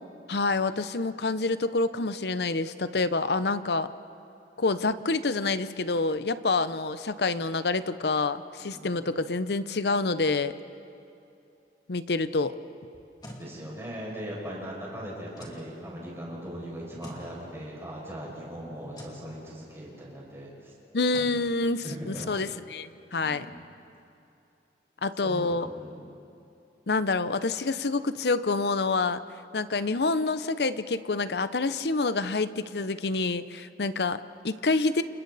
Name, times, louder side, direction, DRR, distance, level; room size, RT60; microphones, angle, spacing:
voice 1, 0.3-3.9 4.6-10.5 11.9-12.5 20.9-23.5 25.0-25.7 26.9-29.2 29.5-35.0, left 3 dB, 65° left, 13 dB, 0.7 m, -27 dB
voice 2, 8.6-8.9 13.4-20.7 21.8-22.3 23.2-23.6 25.2-26.1, equal, 15° right, -5 dB, 6.4 m, -39 dB
sound 1, 12.9-13.5 15.3-15.6 17.0-17.3 18.9-19.2 21.1-21.4, equal, 25° left, 2.7 m, -43 dB
29.5 x 29.0 x 4.2 m, 2.7 s
head